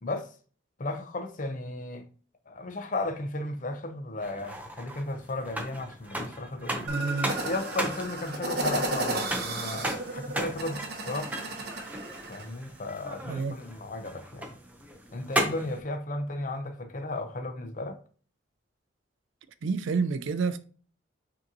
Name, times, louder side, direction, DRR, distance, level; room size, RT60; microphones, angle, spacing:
voice 1, 0.0-0.3 0.8-2.1 2.5-11.3 12.3-14.5 15.1-18.0, left 2 dB, 40° left, 0.6 m, -35 dB
sound 1, 4.2-15.8, right 1 dB, 10° right, 0.5 m, -36 dB
voice 2, 6.8-7.4 13.3-13.6 19.6-20.6, right 4 dB, 75° right, 0.4 m, -29 dB
sound 2, 6.9-12.5, right 2 dB, 50° right, 0.8 m, -34 dB
6.0 x 2.8 x 2.7 m
head